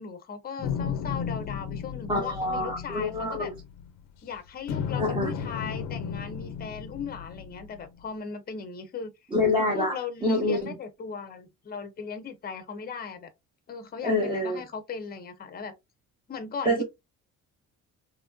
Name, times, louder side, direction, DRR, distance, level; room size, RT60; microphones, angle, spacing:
voice 1, 0.0-3.5 4.2-9.1 9.7-13.3 13.7-15.7 16.3-16.8, left 6 dB, 30° left, 0.6 m, -37 dB
sound 1, 0.6-4.2 4.7-8.0, left 7 dB, 75° left, 0.6 m, -34 dB
voice 2, 2.1-3.5 5.0-5.3 9.3-9.9 10.2-10.7 14.0-14.6 16.6-16.8, left 1 dB, 15° right, 0.6 m, -26 dB
3.1 x 2.5 x 2.2 m
cardioid pair, 130°, 33 cm